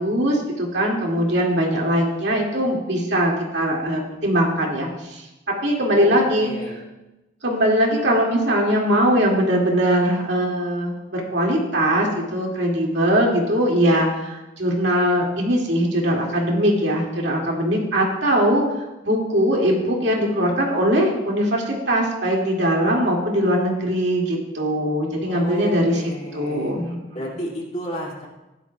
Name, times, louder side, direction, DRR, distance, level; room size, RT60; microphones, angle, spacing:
voice 1, 0.0-5.2 5.6-6.5 7.4-18.6 19.0-26.0 26.3-27.0, equal, 60° right, -1 dB, 2.3 m, -21 dB
voice 2, 5.9-6.8 25.3-26.7 27.1-28.3, equal, 35° left, -3 dB, 2.5 m, -32 dB
16.5 x 11.5 x 2.3 m, 1.0 s
head